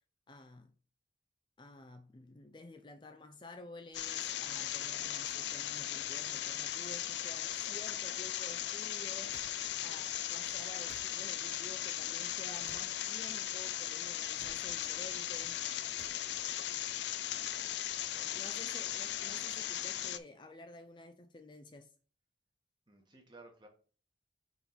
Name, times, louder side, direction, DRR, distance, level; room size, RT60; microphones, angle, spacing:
voice 1, 0.3-0.7 1.6-9.4 9.8-15.6 18.3-21.9, left 2 dB, 25° left, 0.5 m, -52 dB
sound 1, 3.9-20.2, left 12 dB, 80° left, 0.5 m, -38 dB
sound 2, 9.3-9.5 10.9-11.1 12.6-12.9 14.4-14.6 16.0-16.2, right 3 dB, 45° right, 0.8 m, -55 dB
voice 2, 18.1-19.0 22.9-23.7, right 2 dB, 25° right, 1.5 m, -58 dB
5.6 x 4.6 x 4.3 m
head